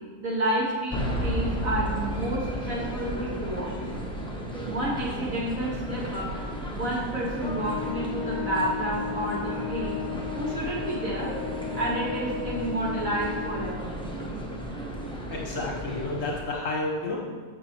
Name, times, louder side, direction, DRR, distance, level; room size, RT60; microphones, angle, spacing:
voice 1, 0.2-3.7 4.6-6.3 6.7-10.0 10.4-11.3 11.7-13.9, right 1 dB, 60° right, -5 dB, 2.1 m, -30 dB
sound 1, 0.9-16.4, equal, 5° left, 0.9 m, -34 dB
Trumpet, 7.4-13.9, left 10 dB, 30° left, 0.4 m, -36 dB
voice 2, 15.3-17.2, left 2 dB, 60° left, -2 dB, 1.5 m, -30 dB
14.5 x 5.3 x 3.1 m, 1.5 s
omnidirectional pair, 1.6 m